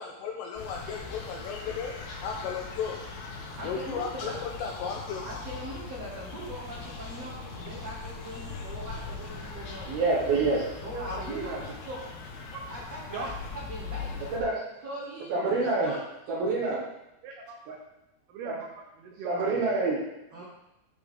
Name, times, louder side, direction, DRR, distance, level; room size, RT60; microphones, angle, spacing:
voice 1, 0.0-2.0 2.2-3.0 3.6-5.2, left 6 dB, 85° left, 0 dB, 2.5 m, -35 dB
sound 1, 0.6-14.4, left 4 dB, 70° left, 2.5 m, -40 dB
voice 2, 3.6-4.4 5.2-10.0 10.8-12.0 12.7-14.3 14.8-16.8 20.3-20.4, right 1 dB, 55° right, -6 dB, 1.9 m, -41 dB
voice 3, 9.9-10.6 14.3-14.7 15.3-15.9 16.3-16.8 17.7-17.8 18.4-18.6 19.2-20.0, right 3 dB, 70° right, -4 dB, 2.4 m, -26 dB
voice 4, 10.9-11.6 12.5-12.6 13.1-13.3 15.3-15.6 17.2-17.8 18.3-19.8 20.4-20.5, right 4 dB, 90° right, 1 dB, 2.2 m, -40 dB
14.5 x 5.6 x 3.7 m, 0.88 s
omnidirectional pair, 5.8 m